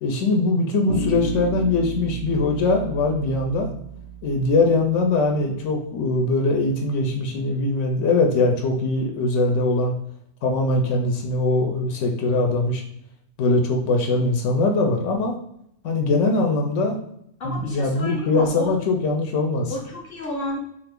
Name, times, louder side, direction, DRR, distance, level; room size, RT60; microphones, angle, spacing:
voice 1, 0.0-3.7 4.2-9.9 10.4-12.8 13.4-15.3 15.8-17.0 17.4-19.7, left 2 dB, 90° left, 2 dB, 0.9 m, -21 dB
Bass guitar, 0.9-4.9, right 4 dB, 90° right, 0.9 m, -32 dB
voice 2, 17.4-18.7 19.7-20.6, left 1 dB, 60° left, -1 dB, 0.8 m, -31 dB
2.5 x 2.5 x 3.5 m, 0.73 s
omnidirectional pair, 1.2 m